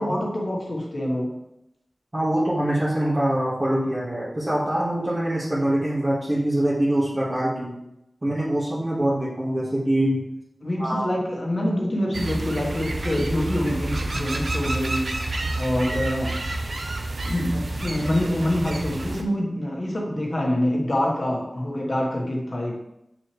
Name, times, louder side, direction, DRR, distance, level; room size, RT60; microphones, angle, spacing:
voice 1, 0.0-1.3 10.6-15.1 15.6-16.4 17.2-22.8, left 1 dB, 50° left, -2 dB, 1.5 m, -26 dB
voice 2, 2.1-7.8 8.2-10.2 10.8-11.0, right 1 dB, 35° right, -10 dB, 1.8 m, -24 dB
sound 1, 12.1-19.2, right 2 dB, 75° right, 0.7 m, -29 dB
6.8 x 6.0 x 3.3 m, 0.86 s
wide cardioid pair, 80°, 0 cm